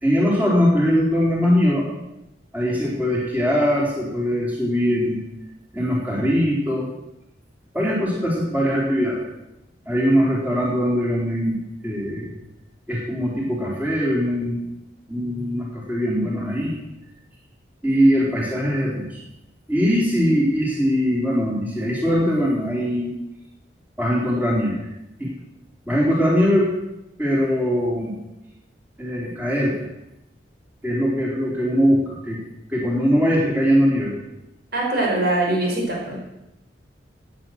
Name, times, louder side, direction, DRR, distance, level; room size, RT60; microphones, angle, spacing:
voice 1, 0.0-1.9 2.5-5.2 5.7-6.9 7.7-9.2 9.8-12.3 12.9-14.7 15.1-16.8 17.8-19.2 19.7-23.1 24.0-24.8 25.2-25.3 25.9-26.7 27.2-28.2 29.0-29.8 30.8-32.4 32.7-34.2, equal, 10° right, -4 dB, 4.0 m, -21 dB
voice 2, 20.0-20.4 34.7-36.2, right 2 dB, 55° right, -1 dB, 5.2 m, -23 dB
17.5 x 9.4 x 6.6 m, 0.89 s
head